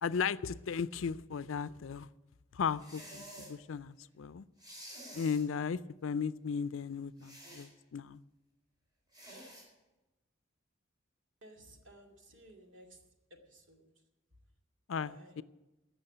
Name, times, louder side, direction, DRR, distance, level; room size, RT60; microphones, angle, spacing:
voice 1, 0.0-2.1 2.5-4.5 5.1-8.2 14.9-15.4, left 6 dB, 80° left, 16 dB, 0.5 m, -36 dB
sound 1, 2.8-3.6 4.6-5.5 7.2-7.7 9.1-9.7, right 1 dB, 20° right, 3.8 m, -50 dB
voice 2, 11.4-12.9 13.5-13.9 15.0-15.3, right 1 dB, 70° right, 2 dB, 2.4 m, -56 dB
15.5 x 6.3 x 9.8 m, 1.1 s
head